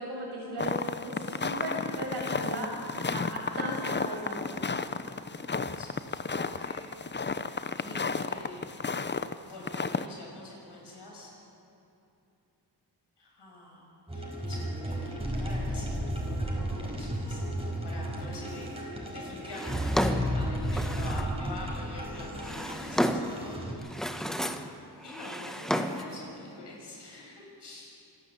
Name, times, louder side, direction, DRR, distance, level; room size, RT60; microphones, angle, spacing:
voice 1, 0.0-2.8 3.1-4.6, right 1 dB, 80° right, -2 dB, 6.5 m, -37 dB
sound 1, 0.6-9.3 9.6-10.1, left 4 dB, 25° left, 0.8 m, -33 dB
voice 2, 5.8-6.8 7.2-8.7 9.4-11.3 13.2-18.7 19.0-24.3 25.0-27.9, left 2 dB, 75° left, -2 dB, 6.7 m, -45 dB
sound 2, 14.1-23.7, equal, 15° right, 5.1 m, -33 dB
Drawer open or close, 19.5-21.4 22.2-23.4 23.8-24.7 25.0-26.2, equal, ahead, 1.3 m, -32 dB
25.5 x 12.0 x 8.4 m, 2.8 s
cardioid pair, 65°, 41 cm